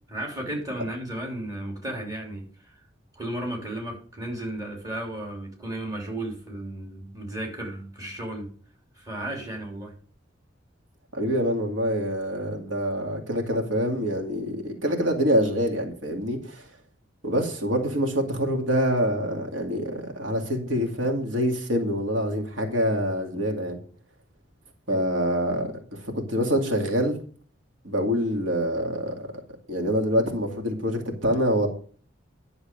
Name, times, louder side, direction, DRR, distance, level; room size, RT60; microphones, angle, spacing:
voice 1, 0.1-2.8 3.1-8.5 8.9-9.9 24.9-25.0, right 1 dB, 20° right, 0 dB, 3.2 m, -34 dB
voice 2, 11.1-16.7 17.2-23.8 24.9-27.2 27.8-29.1 29.7-31.7, equal, 85° right, 2 dB, 2.3 m, -25 dB
11.0 x 7.0 x 5.2 m, 0.43 s
head